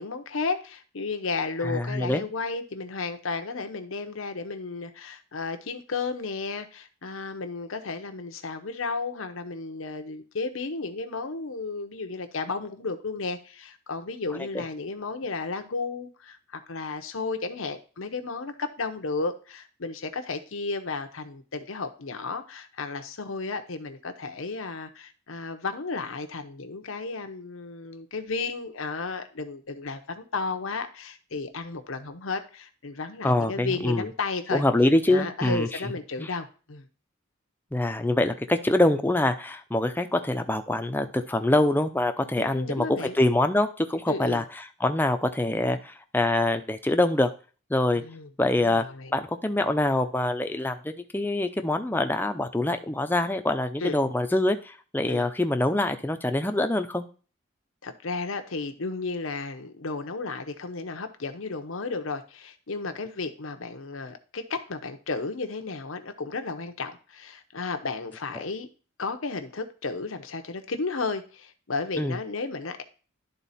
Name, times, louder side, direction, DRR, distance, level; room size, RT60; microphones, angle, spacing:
voice 1, 0.0-34.6 35.1-36.9 42.4-43.2 44.1-44.4 47.9-48.3 48.6-49.1 53.8-54.0 55.1-55.3 57.8-68.7 69.0-72.8, left 4 dB, 80° left, 7 dB, 0.9 m, -33 dB
voice 2, 1.6-2.2 33.2-34.0 34.5-35.7 36.2-36.3 37.7-42.8 43.2-44.4 44.8-47.3 47.7-48.0 48.4-48.8 49.1-57.0 72.0-72.2, left 1 dB, 10° left, 7 dB, 0.6 m, -24 dB
11.0 x 4.0 x 4.2 m, 0.36 s
head